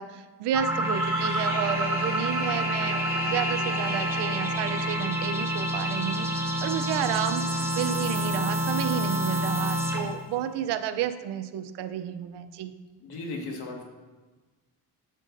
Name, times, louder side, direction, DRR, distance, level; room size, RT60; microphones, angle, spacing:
voice 1, 0.0-6.3 6.6-12.7, right 9 dB, 75° right, 10 dB, 0.6 m, -31 dB
sound 1, 0.5-10.2, equal, 5° right, 1.1 m, -28 dB
sound 2, 0.6-5.1, left 1 dB, 30° left, 2.6 m, -35 dB
voice 2, 13.0-13.8, left 2 dB, 65° left, 0 dB, 1.7 m, -37 dB
9.1 x 7.4 x 2.6 m, 1.3 s
cardioid pair, 95°, 41 cm